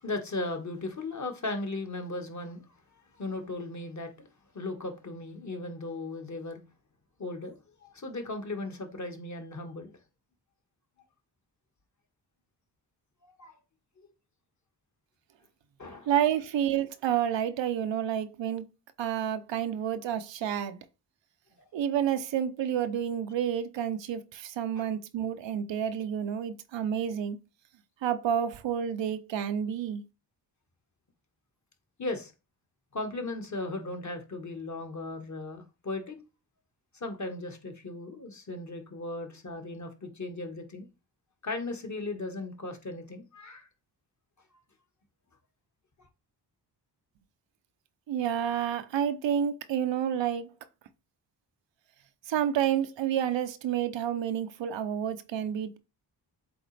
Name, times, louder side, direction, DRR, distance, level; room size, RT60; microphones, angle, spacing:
voice 1, 0.0-2.6 3.2-4.3 4.5-6.6 7.2-9.9 13.2-13.6 14.0-14.1 15.8-16.1 21.6-21.7 24.7-24.9 32.0-32.3 32.9-36.2 36.9-40.9 41.4-43.7, left 2 dB, 40° left, 1.7 m, -37 dB
voice 2, 16.1-18.6 19.0-20.8 21.7-27.4 28.0-30.0 48.1-50.5 52.3-55.8, right 9 dB, 85° right, 0.8 m, -29 dB
7.9 x 3.9 x 3.3 m
cardioid pair, 75°, 43 cm